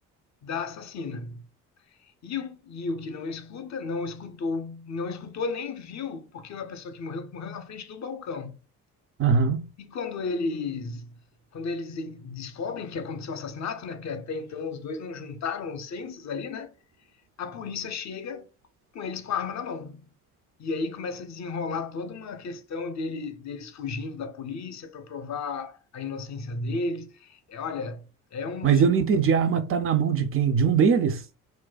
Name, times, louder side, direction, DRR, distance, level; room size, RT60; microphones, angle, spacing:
voice 1, 0.4-1.4 2.2-8.6 9.8-11.1 11.5-16.7 17.4-18.5 18.9-20.0 20.6-29.1, left 4 dB, 40° left, 0.7 m, -34 dB
voice 2, 9.2-9.7 28.6-31.2, right 6 dB, 30° right, 0.5 m, -21 dB
2.5 x 2.1 x 3.8 m
hypercardioid pair, 50°, 44 cm